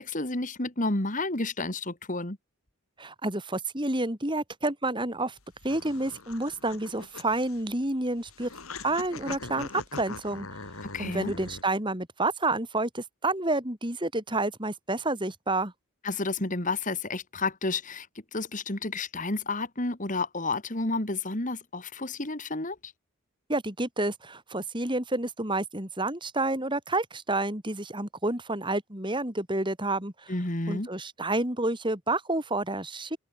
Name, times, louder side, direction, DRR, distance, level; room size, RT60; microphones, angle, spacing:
voice 1, 0.0-2.4 10.9-11.4 16.0-18.1 18.3-22.8 30.3-30.9, left 2 dB, 35° left, 2.6 m, -31 dB
voice 2, 3.0-5.3 5.6-8.5 8.8-10.5 11.0-15.7 23.5-30.3 30.7-33.2, right 2 dB, 20° right, 4.1 m, -29 dB
sound 1, 5.4-11.6, left 3 dB, 85° left, 5.2 m, -42 dB
head